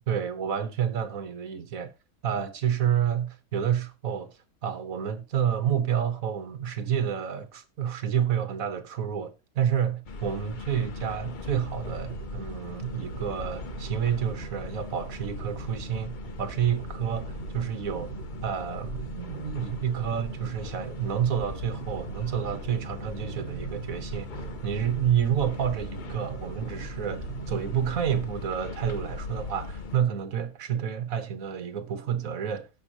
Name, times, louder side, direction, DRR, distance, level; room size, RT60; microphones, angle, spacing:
voice 1, 0.1-1.9 2.2-18.1 18.4-32.7, right 8 dB, 60° right, 1.5 m, -29 dB
sound 1, 10.1-30.0, left 4 dB, 45° left, 0.6 m, -39 dB
sound 2, 10.9-28.4, right 10 dB, 85° right, 1.4 m, -42 dB
16.5 x 6.3 x 2.9 m
omnidirectional pair, 1.7 m